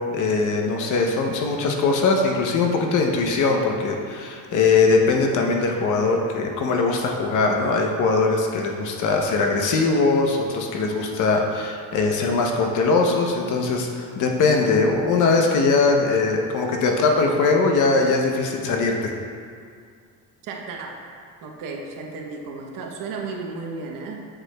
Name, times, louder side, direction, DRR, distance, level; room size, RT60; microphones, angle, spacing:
voice 1, 0.0-19.1, left 3 dB, 55° left, 2 dB, 0.8 m, -21 dB
voice 2, 20.4-21.0 21.4-24.3, right 4 dB, 60° right, 1 dB, 0.9 m, -34 dB
7.9 x 6.1 x 2.3 m, 2.2 s
cardioid pair, 150°, 37 cm